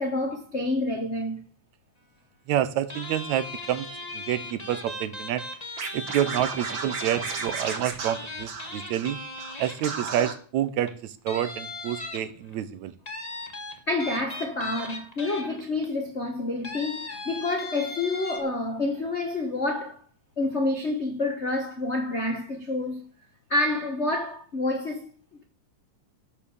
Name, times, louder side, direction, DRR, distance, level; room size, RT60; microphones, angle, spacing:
voice 1, 0.0-1.4 13.9-20.0 20.4-23.1 23.5-25.1, left 2 dB, 80° left, 0.6 m, -28 dB
voice 2, 2.5-3.9 4.1-5.4 5.9-9.2 9.6-12.9, right 11 dB, 75° right, 2.0 m, -28 dB
sound 1, 2.9-10.3 10.8-10.9 11.3-12.5 13.1-15.9 16.6-18.4, left 1 dB, 20° left, 1.2 m, -38 dB
Scratching (performance technique), 5.8-9.1 9.4-9.5 9.8-10.3, right 5 dB, 45° right, 1.9 m, -34 dB
12.0 x 7.0 x 7.1 m
omnidirectional pair, 3.5 m